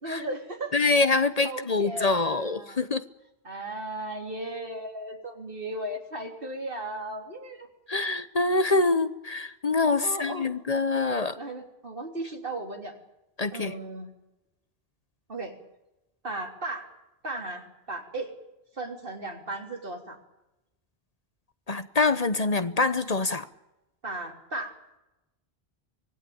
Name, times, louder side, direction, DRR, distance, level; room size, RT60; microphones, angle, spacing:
voice 1, 0.0-0.8 1.4-2.8 3.4-7.7 10.0-10.5 11.4-13.0 13.5-14.1 15.3-15.5 16.2-16.9 17.2-18.3 18.7-20.2 24.0-24.7, right 1 dB, 60° right, 2 dB, 3.6 m, -36 dB
voice 2, 0.7-3.0 7.9-11.4 13.4-13.7 21.7-23.5, left 3 dB, 40° left, 12 dB, 1.0 m, -25 dB
25.0 x 18.5 x 8.7 m, 0.95 s
omnidirectional pair, 1.0 m